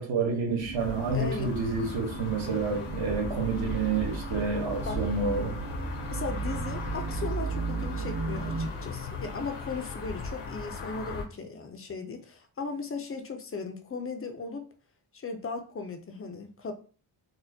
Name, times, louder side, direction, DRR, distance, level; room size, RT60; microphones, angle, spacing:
voice 1, 0.0-5.6, right 4 dB, 70° right, 1.1 m, -29 dB
sound 1, 0.6-8.7, right 4 dB, 90° right, 0.6 m, -35 dB
sound 2, 0.8-11.3, left 4 dB, 90° left, 0.9 m, -38 dB
voice 2, 1.1-1.6 4.9-5.0 6.1-14.7 15.1-16.7, left 4 dB, 30° left, 0.4 m, -37 dB
4.2 x 2.1 x 2.6 m
wide cardioid pair, 145°, 49 cm